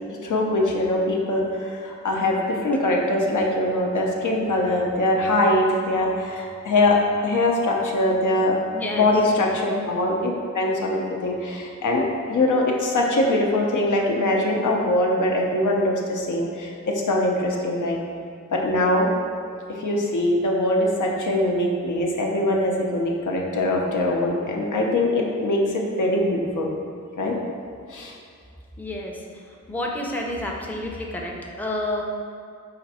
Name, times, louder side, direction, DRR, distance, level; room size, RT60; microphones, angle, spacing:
voice 1, 0.2-7.0 7.2-8.5 8.9-18.0 18.5-19.1 19.7-26.7 27.2-27.4 27.9-28.1, left 1 dB, 85° left, -1 dB, 0.6 m, -22 dB
voice 2, 8.7-9.1 28.8-29.1 29.7-32.0, left 1 dB, 5° left, -1 dB, 0.5 m, -29 dB
5.0 x 2.6 x 4.1 m, 2.3 s
wide cardioid pair, 100°, 30 cm